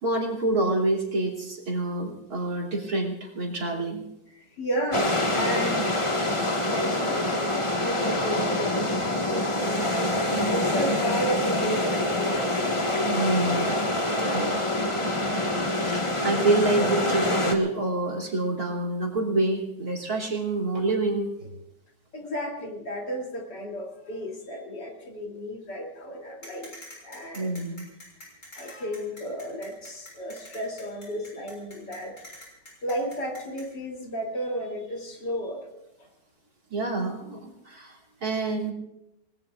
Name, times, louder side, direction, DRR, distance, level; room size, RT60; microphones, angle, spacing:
voice 1, 0.0-4.1 13.1-13.7 14.2-14.6 15.7-21.5 27.3-27.9 36.7-38.7, right 2 dB, 60° right, -2 dB, 3.5 m, -27 dB
voice 2, 4.3-10.0 10.5-12.6 22.1-26.7 27.0-27.6 28.5-32.1 32.8-35.7 36.0-36.1, equal, 80° left, 0 dB, 3.8 m, -33 dB
sound 1, 4.9-17.5, left 1 dB, 20° left, 1.5 m, -26 dB
sound 2, 26.4-33.6, left 1 dB, 45° left, 6.6 m, -45 dB
29.0 x 19.0 x 2.5 m, 0.88 s
omnidirectional pair, 1.8 m